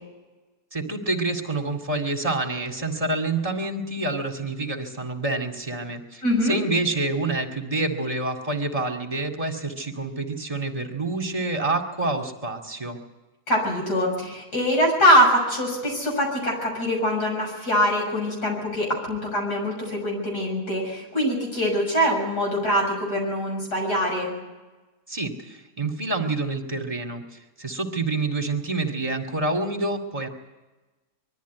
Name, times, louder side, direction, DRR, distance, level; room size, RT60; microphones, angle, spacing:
voice 1, 0.7-13.0 25.1-27.2 27.6-30.3, right 2 dB, 20° right, 3 dB, 2.4 m, -27 dB
voice 2, 6.2-6.6 13.5-24.3, equal, 85° left, -1 dB, 7.3 m, -23 dB
22.5 x 14.0 x 9.4 m, 1.2 s
omnidirectional pair, 1.7 m